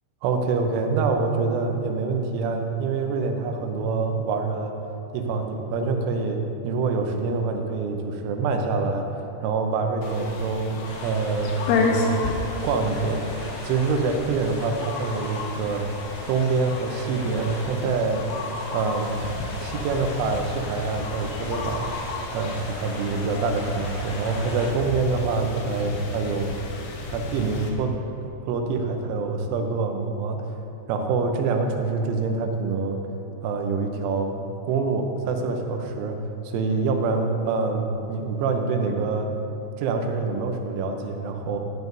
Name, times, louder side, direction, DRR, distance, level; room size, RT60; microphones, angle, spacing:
voice 1, 0.2-4.7 5.1-9.1 9.4-12.3 12.6-13.3 13.6-15.9 16.3-18.2 18.7-19.3 19.6-21.9 22.3-26.5 27.0-28.1 28.4-30.5 30.9-33.0 33.4-39.3 39.8-41.6, right 4 dB, 85° right, 4 dB, 3.3 m, -26 dB
sound 1, 10.0-27.7, left 3 dB, 85° left, 3.4 m, -32 dB
sound 2, 10.8-24.7, left 1 dB, 50° left, 4.0 m, -39 dB
14.0 x 11.0 x 2.7 m, 2.9 s
omnidirectional pair, 5.4 m